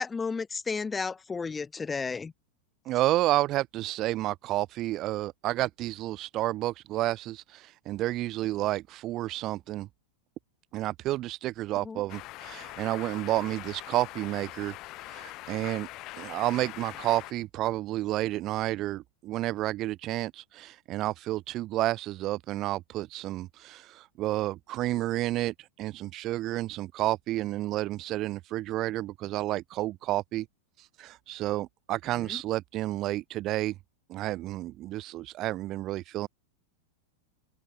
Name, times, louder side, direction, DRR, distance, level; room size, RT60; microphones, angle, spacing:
voice 1, 0.0-2.3 11.8-12.0 32.2-32.4, left 4 dB, 15° left, 1.5 m, -33 dB
voice 2, 2.9-9.9 10.7-15.9 16.1-30.5 30.8-33.8 34.1-36.3, right 16 dB, 35° right, 0.3 m, -30 dB
sound 1, 12.1-17.3, left 19 dB, 40° left, 1.2 m, -42 dB
figure-of-eight pair, 90°, 0 cm